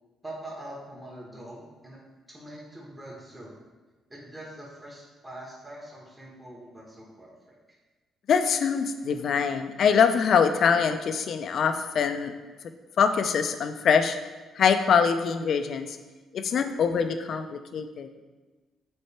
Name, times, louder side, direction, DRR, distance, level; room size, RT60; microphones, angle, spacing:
voice 1, 0.2-2.0 2.3-3.5 4.1-7.5, right 1 dB, 15° right, -4 dB, 1.7 m, -43 dB
voice 2, 8.3-12.3 13.0-14.2 14.6-16.0 16.3-18.1, left 6 dB, 60° left, 8 dB, 0.5 m, -24 dB
6.5 x 4.4 x 4.4 m, 1.3 s
cardioid pair, 90°, 0 cm